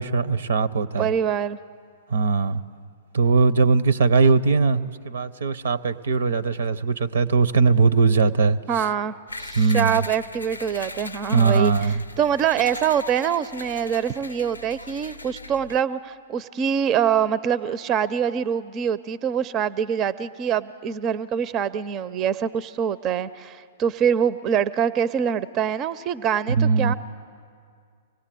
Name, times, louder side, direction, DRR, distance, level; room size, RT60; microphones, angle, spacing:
voice 1, 0.0-1.1 2.1-2.6 3.1-8.9 9.6-10.0 11.3-12.0 26.5-26.9, right 4 dB, 65° right, 0.7 m, -20 dB
voice 2, 1.0-1.6 8.7-11.7 12.2-26.9, right 8 dB, 30° right, 0.6 m, -24 dB
sound 1, 9.3-15.8, left 3 dB, 90° left, 0.5 m, -39 dB
25.0 x 18.5 x 7.7 m
figure-of-eight pair, 110°, 0 cm